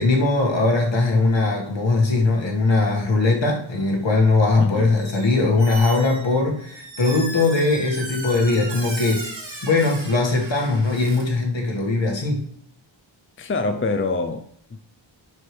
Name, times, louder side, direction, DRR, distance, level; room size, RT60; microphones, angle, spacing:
voice 1, 0.0-9.3 9.6-12.4, left 3 dB, 65° left, 1.9 m, -20 dB
voice 2, 4.6-5.0 13.4-14.8, left 3 dB, 25° left, 0.6 m, -25 dB
Squeak, 4.9-5.3 5.6-11.2, right 2 dB, 75° right, 2.8 m, -36 dB
10.5 x 4.8 x 3.3 m
wide cardioid pair, 70°, 47 cm